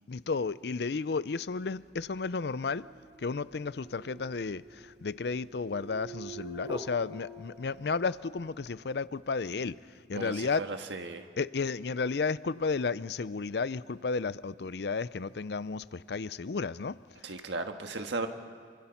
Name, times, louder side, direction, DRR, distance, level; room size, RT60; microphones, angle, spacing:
voice 1, 0.1-2.9 3.2-10.6 11.4-17.0, left 4 dB, 65° left, 17 dB, 0.5 m, -33 dB
sound 1, 1.8-8.3, right 1 dB, 25° right, 1.6 m, -47 dB
voice 2, 10.1-11.3 17.2-18.3, right 3 dB, 85° right, 5 dB, 1.5 m, -36 dB
27.5 x 25.0 x 5.9 m, 2.1 s
head